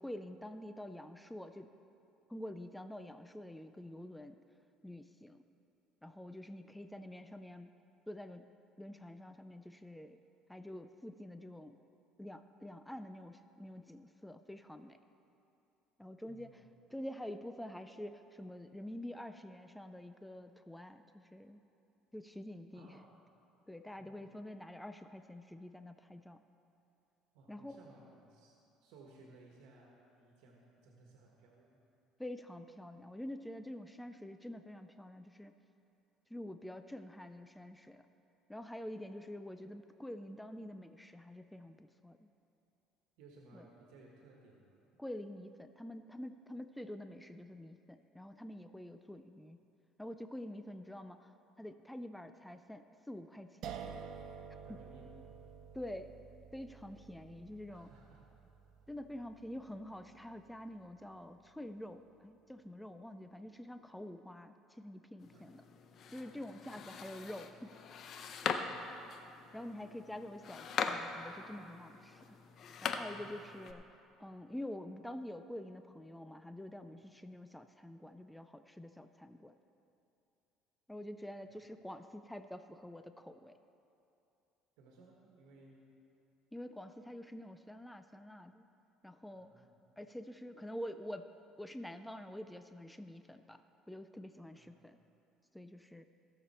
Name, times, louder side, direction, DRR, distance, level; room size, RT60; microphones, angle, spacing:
voice 1, 0.0-1.7 2.3-4.4 4.8-5.4 6.0-7.7 8.1-8.4 8.8-10.2 10.5-11.8 12.2-15.0 16.0-21.6 22.1-23.0 23.7-26.4 27.5-27.8 32.2-35.5 36.3-38.0 38.5-42.3 43.5-43.7 45.0-49.6 50.0-53.8 54.7-54.8 55.7-56.1 56.5-57.9 58.9-65.6 66.1-67.7 69.5-72.4 72.8-73.8 74.2-79.5 80.9-83.6 86.5-88.7 89.0-89.6 90.0-91.3 91.6-93.6 93.9-95.0 95.5-96.0, left 1 dB, 5° left, 9 dB, 0.4 m, -47 dB
voice 2, 16.3-16.7 22.7-23.2 24.0-24.3 27.3-31.8 43.2-44.8 54.6-55.2 57.7-58.3 65.3-65.5 66.7-66.9 68.3-68.8 73.1-73.5 81.4-81.5 84.8-85.9 89.3-89.9 94.5-94.8, right 2 dB, 80° right, -1 dB, 1.4 m, -60 dB
sound 1, 53.6-60.6, right 7 dB, 60° right, 0.7 m, -50 dB
sound 2, 65.2-73.7, left 6 dB, 50° left, 0.7 m, -42 dB
16.5 x 6.8 x 4.3 m, 2.8 s
cardioid pair, 120°, 0 cm